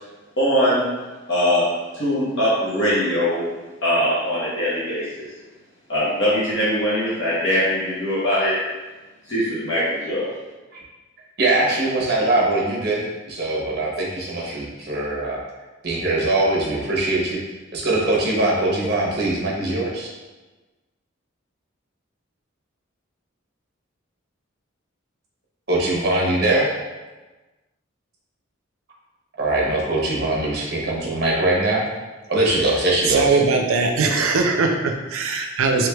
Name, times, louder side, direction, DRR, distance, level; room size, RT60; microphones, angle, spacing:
voice 1, 0.4-0.8 1.3-1.6 1.9-3.4 3.8-5.3 5.9-8.6 9.3-10.3, equal, 60° left, -10 dB, 0.9 m, -21 dB
voice 2, 11.4-15.4 15.8-17.4 17.7-20.1 25.7-26.7 29.4-31.8 32.3-33.4, right 2 dB, 50° right, -3 dB, 0.7 m, -22 dB
voice 3, 33.1-35.9, right 4 dB, 85° right, 4 dB, 0.4 m, -20 dB
3.3 x 3.1 x 2.3 m, 1.2 s
head